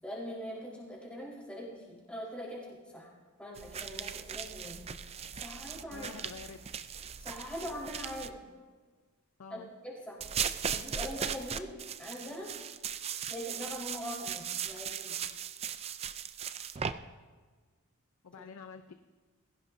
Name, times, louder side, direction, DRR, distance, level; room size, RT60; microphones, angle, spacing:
voice 1, 0.0-3.1 3.4-4.8 5.4-6.1 7.2-8.4 9.5-10.2 10.7-11.7 12.0-12.5 13.3-15.3, equal, 5° left, -6 dB, 4.2 m, -42 dB
sound 1, 3.6-8.3 10.2-16.9, right 7 dB, 30° right, 0.4 m, -38 dB
voice 2, 5.9-6.7 9.4-9.7 18.2-18.9, left 5 dB, 80° left, 8 dB, 0.6 m, -47 dB
20.5 x 16.0 x 2.7 m, 1.4 s
head